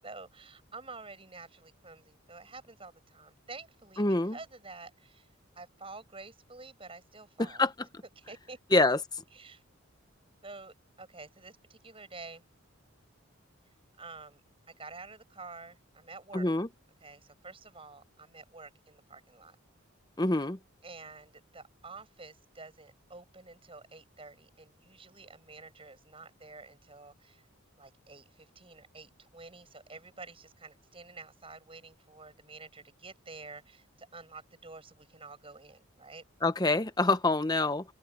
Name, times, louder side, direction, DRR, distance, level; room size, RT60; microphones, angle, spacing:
voice 1, 0.0-5.3 5.6-7.6 8.2-8.8 9.3-9.6 10.4-12.4 14.0-14.4 14.8-16.5 17.0-19.6 20.3-20.5 20.8-27.5 27.8-36.2, right 3 dB, 25° right, 7.0 m, -49 dB
voice 2, 4.0-4.4 7.4-7.7 8.7-9.0 16.3-16.7 20.2-20.6 36.4-37.8, left 2 dB, 20° left, 0.9 m, -26 dB
head